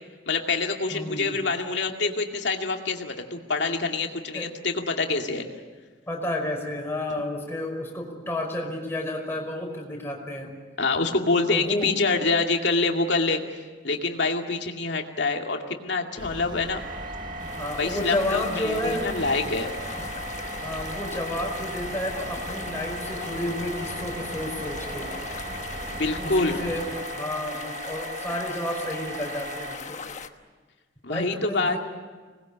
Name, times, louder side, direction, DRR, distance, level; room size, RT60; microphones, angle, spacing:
voice 1, 0.3-5.4 10.8-13.6 13.8-16.8 17.8-19.7 25.9-26.6 31.0-31.8, left 3 dB, 65° left, 3 dB, 2.4 m, -26 dB
voice 2, 0.9-1.4 4.3-4.5 6.1-10.5 11.5-11.9 17.6-19.1 19.9-20.0 20.6-25.1 26.1-30.0 31.1-31.8, left 1 dB, 10° left, 0 dB, 5.3 m, -31 dB
sound 1, 16.2-27.0, right 1 dB, 25° right, 1.1 m, -40 dB
sound 2, 16.7-29.7, right 2 dB, 45° right, 4.5 m, -38 dB
sound 3, 17.4-30.3, left 5 dB, 40° left, 1.2 m, -39 dB
26.0 x 20.0 x 8.8 m, 1.4 s
head